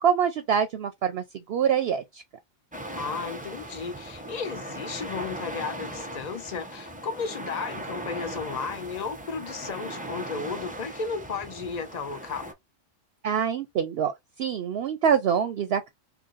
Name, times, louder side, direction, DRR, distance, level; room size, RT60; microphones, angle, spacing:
voice 1, 0.0-2.2 13.2-14.1 14.4-15.9, right 8 dB, 65° right, 0.7 m, -25 dB
sound 1, 2.7-12.5, right 1 dB, 15° right, 0.3 m, -38 dB
voice 2, 2.9-12.5, left 5 dB, 40° left, 0.7 m, -34 dB
2.9 x 2.6 x 3.8 m
omnidirectional pair, 1.2 m